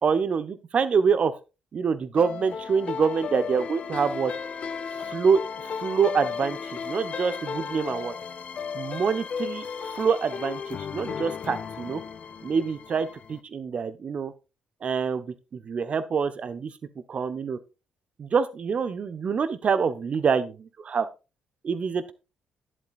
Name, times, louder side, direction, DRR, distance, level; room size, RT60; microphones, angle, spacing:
voice 1, 0.0-1.3 1.7-4.3 5.1-8.1 8.7-12.0 12.4-14.3 14.8-16.7 17.1-17.6 18.2-21.1 21.6-22.1, right 6 dB, 45° right, 12 dB, 1.1 m, -26 dB
sound 1, 2.1-13.4, left 6 dB, 50° left, 0.8 m, -35 dB
11.0 x 11.0 x 2.5 m, 0.29 s
figure-of-eight pair, 45°, 3 cm